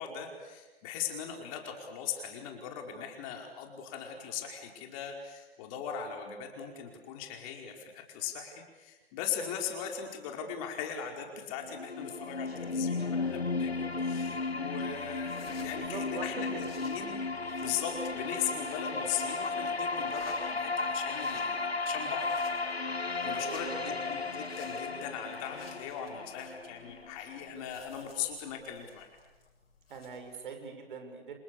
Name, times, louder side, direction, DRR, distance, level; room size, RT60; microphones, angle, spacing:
voice 1, 0.0-17.2 17.6-22.3 23.2-29.1, left 8 dB, 35° left, 3 dB, 4.9 m, -39 dB
sound 1, 11.6-27.6, left 3 dB, 90° left, 1.4 m, -35 dB
sound 2, 12.2-30.4, left 4 dB, 70° left, 7.6 m, -55 dB
voice 2, 15.8-16.7 23.4-24.0 29.9-31.3, right 5 dB, 55° right, 5 dB, 6.3 m, -42 dB
30.0 x 28.0 x 6.9 m, 1.1 s
figure-of-eight pair, 125°, 31 cm